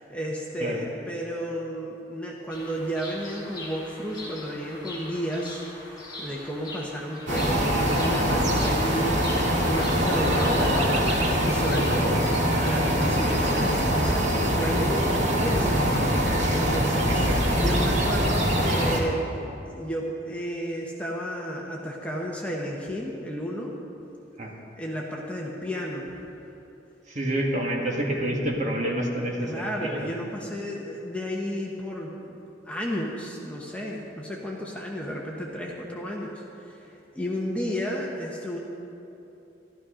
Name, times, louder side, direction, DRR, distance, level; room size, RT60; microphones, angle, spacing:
voice 1, 0.0-12.3 12.5-19.2 19.6-23.7 24.8-26.1 29.4-32.4 32.6-38.6, equal, 5° left, -3 dB, 1.1 m, -32 dB
Bird vocalization bird call bird song, 2.5-12.1, left 2 dB, 25° left, 2.7 m, -41 dB
sound 1, 7.3-19.0, equal, 75° right, 2.0 m, -23 dB
voice 2, 17.1-17.6 24.4-24.5 27.1-29.5 29.8-29.9, right 1 dB, 40° right, -1 dB, 1.8 m, -28 dB
14.5 x 12.5 x 5.0 m, 2.9 s
head